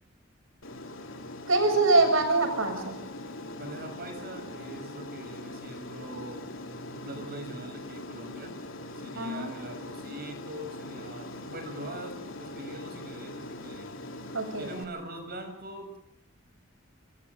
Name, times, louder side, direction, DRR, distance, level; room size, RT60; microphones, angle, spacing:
Aircraft, 0.6-14.8, left 2 dB, 75° left, 3.6 m, -41 dB
voice 1, 1.5-3.0 9.2-9.6 14.3-14.7, right 3 dB, 80° right, 6 dB, 7.0 m, -24 dB
voice 2, 3.6-6.5 6.9-8.6 8.9-13.9 14.6-16.0, right 1 dB, 50° right, 5 dB, 7.0 m, -42 dB
27.5 x 27.0 x 3.8 m, 0.80 s
head